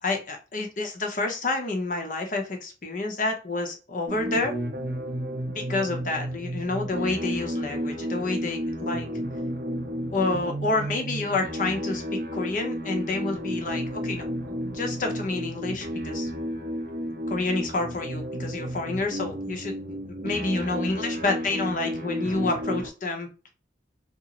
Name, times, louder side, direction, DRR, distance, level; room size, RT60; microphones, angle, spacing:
voice 1, 0.0-4.6 5.5-9.1 10.1-14.2 14.6-16.3 17.3-20.0 20.2-23.3, left 3 dB, 45° left, 3 dB, 0.7 m, -29 dB
sound 1, 4.1-22.9, equal, 50° right, 0.6 m, -32 dB
2.6 x 2.4 x 2.9 m, 0.33 s
head